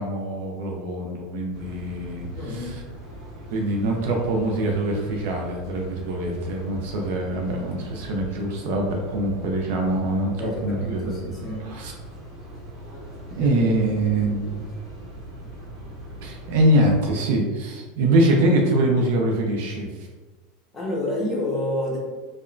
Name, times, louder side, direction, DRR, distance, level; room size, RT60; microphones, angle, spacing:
voice 1, 0.0-2.7 3.5-10.4 10.6-11.1 11.6-11.9 13.3-14.6 16.2-19.9, right 1 dB, 75° right, 1 dB, 0.5 m, -23 dB
sound 1, 1.5-17.1, right 1 dB, 35° right, 1.1 m, -41 dB
voice 2, 2.3-2.7 10.4-11.6 13.4-13.5 20.7-22.0, left 1 dB, 15° left, -5 dB, 0.9 m, -29 dB
2.8 x 2.1 x 2.5 m, 1.3 s
supercardioid pair, 120°, 0 cm